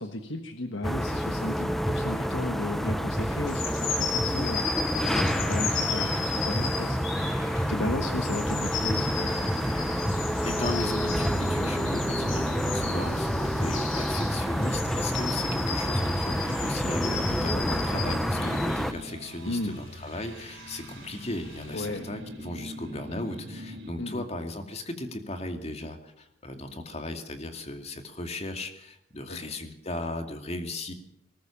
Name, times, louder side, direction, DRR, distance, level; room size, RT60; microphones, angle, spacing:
voice 1, 0.0-7.3 7.5-9.8 19.5-19.8 21.7-22.1 24.0-24.2 29.3-29.4, left 2 dB, 65° left, 6 dB, 1.5 m, -35 dB
sound 1, 0.8-18.9, equal, ahead, 0.8 m, -28 dB
sound 2, 3.3-18.9 19.7-21.8, left 6 dB, 80° left, 5.7 m, -35 dB
sound 3, 8.5-23.9, equal, 65° right, 4.1 m, -42 dB
voice 2, 10.4-30.9, left 1 dB, 30° left, 6 dB, 2.4 m, -36 dB
19.5 x 19.0 x 7.3 m, 0.76 s
head